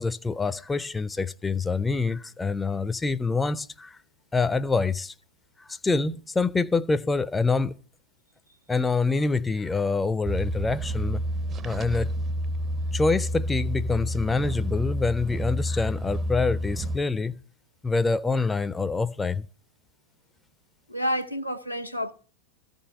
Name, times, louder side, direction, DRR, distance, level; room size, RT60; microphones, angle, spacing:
voice 1, 0.0-4.0 4.3-5.1 5.6-7.8 8.7-11.2 11.6-12.1 12.9-17.4 17.8-19.5, left 3 dB, 10° left, 0.5 m, -26 dB
sound 1, 10.3-17.0, equal, 25° right, 0.7 m, -29 dB
voice 2, 20.9-22.1, equal, 90° left, 0.8 m, -29 dB
14.5 x 5.4 x 9.2 m
figure-of-eight pair, 90°, 0 cm